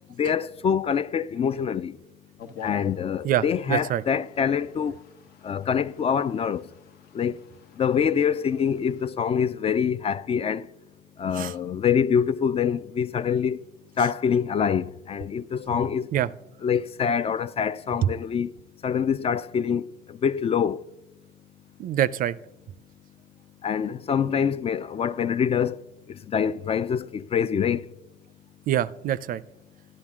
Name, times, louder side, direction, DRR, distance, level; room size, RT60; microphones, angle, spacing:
voice 1, 0.2-2.0 2.6-5.0 5.4-6.7 7.1-7.4 7.8-10.7 11.2-13.6 14.0-16.1 16.6-18.5 18.8-20.8 23.6-25.8 26.1-27.8, left 7 dB, 35° left, 0.4 m, -25 dB
sound 1, 2.4-9.1, left 6 dB, 70° left, 1.1 m, -49 dB
voice 2, 3.2-4.0 11.3-11.5 16.1-16.3 18.0-18.1 21.8-22.4 28.7-29.4, right 11 dB, 55° right, 0.4 m, -25 dB
11.5 x 11.0 x 3.6 m
cardioid pair, 110°, 17 cm